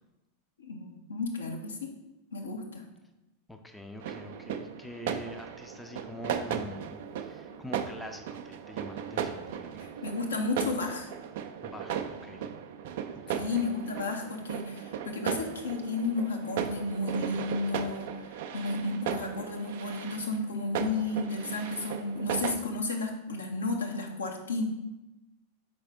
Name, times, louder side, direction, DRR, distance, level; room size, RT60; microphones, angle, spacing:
voice 1, 0.6-1.9 2.3-2.9 9.8-11.1 13.3-24.6, left 3 dB, 70° left, 1 dB, 1.0 m, -33 dB
voice 2, 3.5-9.7 11.6-12.5 13.3-13.6, equal, 5° left, 5 dB, 0.6 m, -44 dB
sound 1, 4.0-22.6, right 8 dB, 55° right, 0.4 m, -37 dB
6.3 x 4.8 x 3.5 m, 0.98 s
figure-of-eight pair, 90°, 0 cm